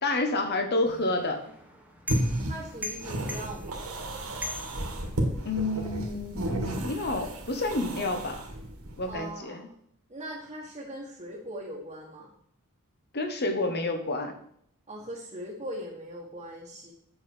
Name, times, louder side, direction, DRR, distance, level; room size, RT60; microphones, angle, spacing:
voice 1, 0.0-1.4 5.4-8.4 9.0-9.6 13.1-14.3, left 2 dB, 50° left, 6 dB, 1.3 m, -29 dB
sound 1, 0.9-5.6, left 2 dB, 5° right, 1.3 m, -41 dB
sound 2, 2.1-9.3, right 1 dB, 75° right, 1.9 m, -33 dB
voice 2, 2.4-3.9 9.1-9.6 10.1-12.3 14.9-16.9, right 1 dB, 30° right, -4 dB, 1.3 m, -40 dB
8.4 x 7.2 x 4.5 m, 0.68 s
head